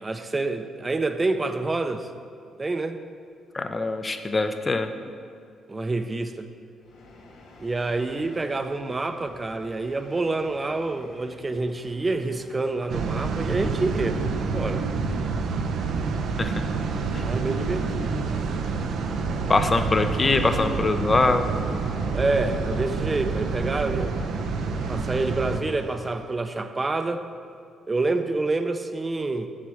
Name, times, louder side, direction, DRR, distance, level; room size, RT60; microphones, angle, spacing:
voice 1, 0.0-2.1 2.6-3.0 5.7-6.5 7.6-14.9 17.2-18.2 22.1-24.1 24.7-27.2 27.9-29.5, right 3 dB, 25° right, 8 dB, 0.6 m, -27 dB
voice 2, 3.5-4.9 16.4-16.5 19.5-21.5, left 3 dB, 25° left, 8 dB, 0.6 m, -23 dB
Train, 6.9-26.3, left 1 dB, 80° left, 1.6 m, -43 dB
sound 1, 12.9-25.6, right 4 dB, 70° right, 0.6 m, -28 dB
7.5 x 6.8 x 6.3 m, 2.3 s
cardioid pair, 90°, 0 cm